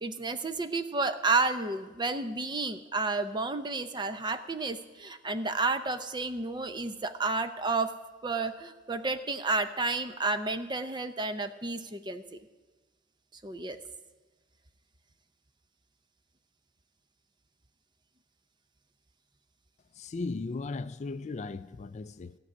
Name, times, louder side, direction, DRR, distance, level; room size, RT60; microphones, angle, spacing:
voice 1, 0.0-7.9 8.2-12.2 13.4-13.8, right 3 dB, 25° right, 10 dB, 0.6 m, -31 dB
voice 2, 20.0-22.4, left 3 dB, 35° left, 13 dB, 0.4 m, -36 dB
16.0 x 6.2 x 9.7 m, 1.3 s
head